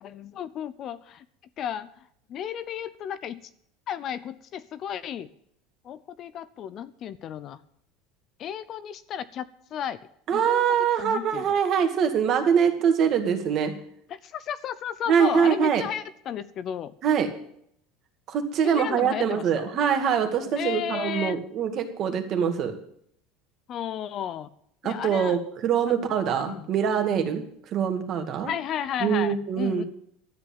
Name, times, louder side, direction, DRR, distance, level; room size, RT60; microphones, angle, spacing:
voice 1, 0.0-1.2 1.6-1.9 2.3-3.5 3.9-5.3 5.8-7.6 8.4-10.0 10.3-10.6 11.0-11.4 14.1-16.9 18.6-19.6 20.6-21.4 23.7-24.5 24.8-25.4 25.9-26.7 28.4-29.8, left 9 dB, 35° left, 14 dB, 0.6 m, -33 dB
voice 2, 10.3-13.7 15.1-15.8 17.0-17.3 18.3-22.8 24.8-27.4 27.7-28.5 29.0-29.9, right 7 dB, 40° right, 6 dB, 2.1 m, -24 dB
13.0 x 8.3 x 8.8 m, 0.68 s
cardioid pair, 155°, 0 cm